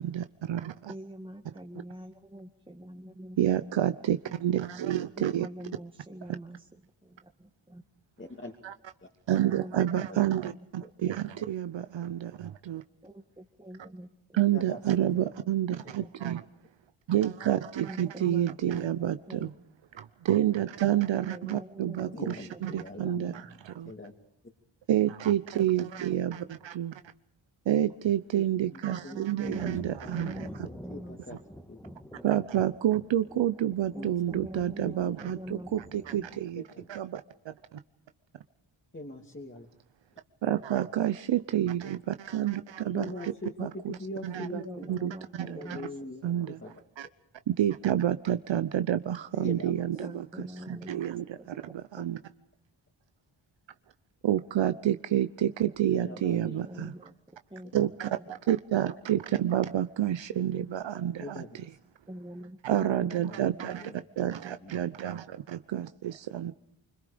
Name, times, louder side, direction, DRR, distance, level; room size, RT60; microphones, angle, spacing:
voice 1, 0.0-0.9 3.4-5.5 8.6-8.7 9.3-12.8 14.3-16.4 17.1-19.5 19.9-23.9 24.9-27.0 27.7-30.5 32.2-36.6 36.9-37.8 40.4-43.3 43.6-44.0 44.2-44.6 44.9-45.8 46.2-46.6 47.0-47.1 47.5-50.3 50.7-52.2 54.2-56.9 57.7-61.6 62.6-66.5, right 11 dB, 70° right, 11 dB, 0.8 m, -29 dB
voice 2, 0.9-3.7 5.2-7.8 9.6-11.2 13.0-14.1 15.8-16.1 17.9-19.5 21.2-23.4 28.9-31.4 33.9-35.7 36.1-36.3 44.5-46.5 50.0-51.3 51.5-51.6 52.0-52.1 55.4-57.1 57.5-57.9 58.2-58.3 62.1-64.5, right 1 dB, 10° right, 0 dB, 1.9 m, -45 dB
voice 3, 8.2-8.5 9.0-9.1 10.1-10.2 10.8-11.4 14.5-15.2 15.9-16.0 18.8-19.4 22.1-23.3 23.8-24.1 28.3-28.4 28.7-29.2 29.6-31.4 31.7-31.8 33.9-34.1 34.5-35.2 36.5-36.9 38.9-39.7 42.9-45.0 45.4-46.7 49.3-50.1 55.8-56.6 61.2-61.8 63.3-63.4 63.7-64.0 64.6-64.7, left 2 dB, 25° left, 1 dB, 2.7 m, -43 dB
Thunder, 29.4-36.4, equal, 5° left, 2.1 m, -47 dB
25.5 x 25.0 x 5.1 m, 0.69 s
cardioid pair, 65°, 46 cm